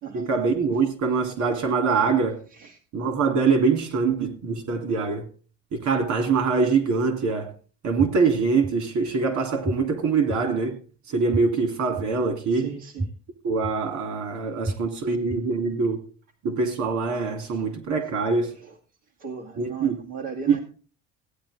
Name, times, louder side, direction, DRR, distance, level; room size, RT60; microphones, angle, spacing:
voice 1, 0.1-2.4 2.9-5.3 5.7-7.5 7.8-10.8 11.1-12.7 13.4-16.0 16.4-18.5 19.6-20.0 20.5-20.6, right 4 dB, 60° right, 3.6 m, -24 dB
sound 1, 8.0-8.1 8.6-8.7 9.7-9.8 10.3-10.4 11.3-11.4 12.0-12.1 13.0-13.1 13.6-13.7 14.6-14.7 15.3-15.4, right 2 dB, ahead, 0.9 m, -27 dB
voice 2, 12.5-13.1 14.7-14.8 17.4-17.6 18.6-18.7 19.2-20.6, right 6 dB, 75° right, 2.4 m, -37 dB
16.0 x 9.5 x 3.7 m
supercardioid pair, 95°, 32 cm